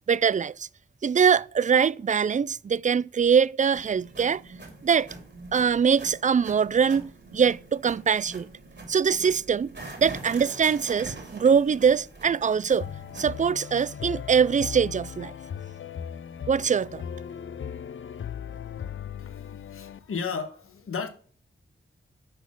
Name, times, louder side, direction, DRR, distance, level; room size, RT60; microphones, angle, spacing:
voice 1, 0.1-0.7 1.0-4.4 4.8-5.1 5.5-8.5 8.9-9.7 10.0-12.9 13.2-15.3 16.5-17.0, right 6 dB, 35° right, 0.4 m, -23 dB
sound 1, 3.7-13.5, right 2 dB, 55° right, 3.1 m, -44 dB
sound 2, 12.8-20.0, left 8 dB, 65° left, 0.5 m, -38 dB
voice 2, 19.2-21.1, left 5 dB, 85° left, 1.3 m, -34 dB
10.5 x 4.2 x 6.2 m
cardioid pair, 40°, 21 cm